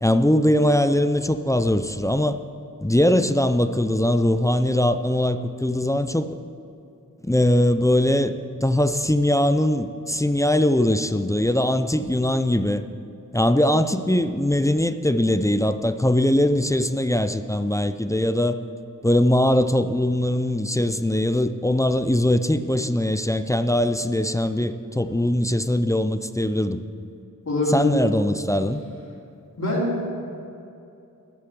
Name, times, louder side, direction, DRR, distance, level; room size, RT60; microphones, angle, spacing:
voice 1, 0.0-2.4 2.8-6.3 7.2-8.3 8.6-12.8 13.3-18.6 19.0-26.8 27.7-28.8, left 1 dB, 10° left, 10 dB, 0.5 m, -21 dB
voice 2, 27.4-28.0 29.6-30.1, left 1 dB, 55° left, -7 dB, 3.3 m, -24 dB
12.5 x 6.7 x 8.6 m, 2.6 s
wide cardioid pair, 75°, 33 cm